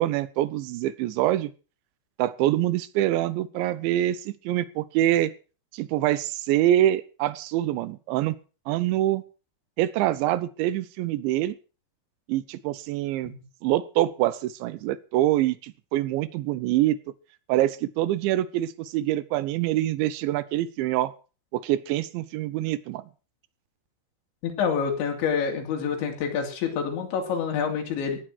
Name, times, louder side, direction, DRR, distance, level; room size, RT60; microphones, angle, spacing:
voice 1, 0.0-1.5 2.2-5.3 5.7-8.4 8.7-9.2 9.8-11.6 12.3-13.3 13.6-17.0 17.5-21.1 21.5-23.1, right 14 dB, 85° right, 17 dB, 3.2 m, -25 dB
voice 2, 24.4-28.2, left 6 dB, 80° left, 4 dB, 5.2 m, -27 dB
17.5 x 9.4 x 6.1 m, 0.35 s
omnidirectional pair, 5.2 m